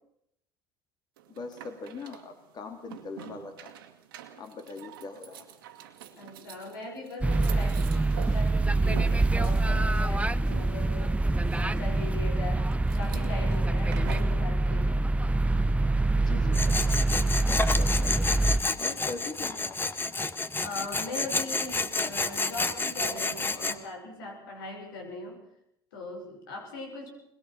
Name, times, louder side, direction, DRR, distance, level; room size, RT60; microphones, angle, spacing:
sound 1, 1.2-14.4, right 10 dB, 85° right, 2.1 m, -46 dB
voice 1, 1.3-3.7 4.4-5.5 16.2-18.4 18.8-19.8, left 4 dB, 40° left, 6 dB, 2.8 m, -41 dB
voice 2, 6.2-12.7 13.0-15.1 20.6-25.5 25.9-27.1, left 2 dB, 80° left, 3 dB, 5.6 m, -40 dB
sound 2, 7.2-18.6, right 2 dB, 10° right, 0.7 m, -25 dB
Tools, 16.5-23.8, left 3 dB, 20° left, 1.5 m, -30 dB
22.0 x 21.5 x 5.8 m, 0.76 s
hypercardioid pair, 75°, 11 cm